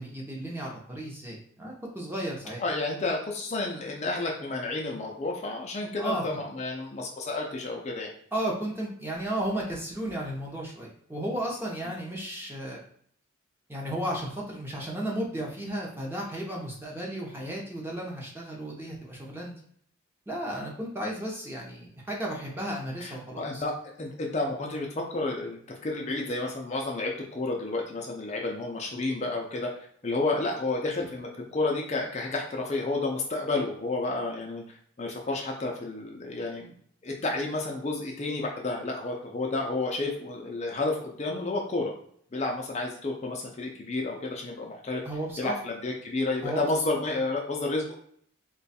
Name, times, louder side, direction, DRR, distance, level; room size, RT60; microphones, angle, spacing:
voice 1, 0.0-2.6 6.0-6.2 8.3-12.8 13.7-19.5 20.3-23.6 45.0-45.5 46.4-46.6, right 1 dB, 10° right, -3 dB, 0.7 m, -34 dB
voice 2, 2.6-8.1 23.0-29.7 30.0-34.6 35.0-36.7 37.0-41.9 42.3-45.0 45.4-47.9, left 2 dB, 30° left, 0 dB, 0.4 m, -31 dB
3.0 x 2.3 x 4.1 m, 0.64 s
head